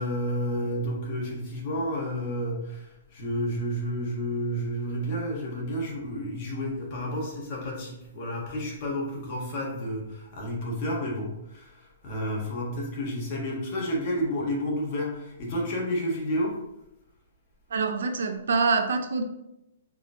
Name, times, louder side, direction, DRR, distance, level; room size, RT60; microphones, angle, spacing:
voice 1, 0.0-16.6, equal, 35° left, -2 dB, 1.4 m, -31 dB
voice 2, 17.7-19.2, right 4 dB, 75° right, 6 dB, 0.6 m, -25 dB
4.8 x 2.9 x 3.8 m, 0.84 s
hypercardioid pair, 170°, 0 cm